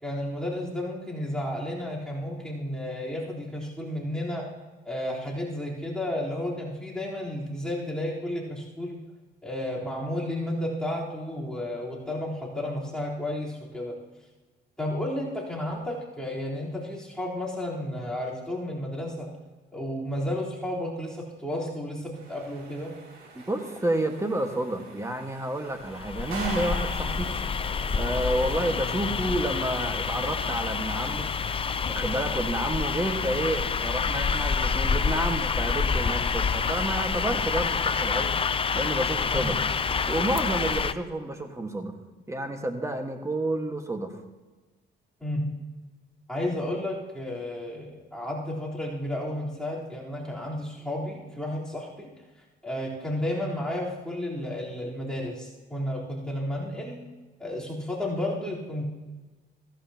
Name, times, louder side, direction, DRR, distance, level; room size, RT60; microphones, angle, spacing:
voice 1, 0.0-4.5 4.9-9.0 9.4-14.0 14.8-19.3 19.7-22.9 39.3-39.6 45.2-45.6 46.3-52.1 52.6-57.0 57.4-58.8, left 1 dB, 5° left, -7 dB, 3.9 m, -32 dB
sound 1, 22.1-29.3, right 4 dB, 85° right, 3.3 m, -43 dB
voice 2, 23.3-27.3 27.9-31.3 31.9-38.3 38.7-39.6 40.1-41.9 42.3-44.1, right 1 dB, 15° right, 4 dB, 1.6 m, -30 dB
sound 2, 25.9-40.9, left 5 dB, 25° left, 0.5 m, -27 dB
16.0 x 15.0 x 2.9 m, 1.3 s
cardioid pair, 90°, 20 cm